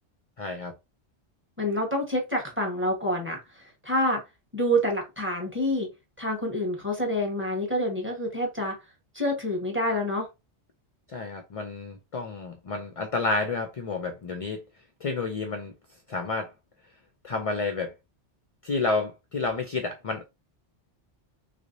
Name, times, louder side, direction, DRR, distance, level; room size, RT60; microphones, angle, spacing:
voice 1, 0.4-0.7 11.1-14.6 15.0-15.7 16.1-16.5 17.2-17.9 18.6-20.2, left 3 dB, 50° left, 0.4 m, -30 dB
voice 2, 1.6-4.2 4.5-5.9 6.2-8.8 9.1-10.3, equal, 10° right, 1.2 m, -27 dB
3.4 x 3.2 x 2.6 m
omnidirectional pair, 1.2 m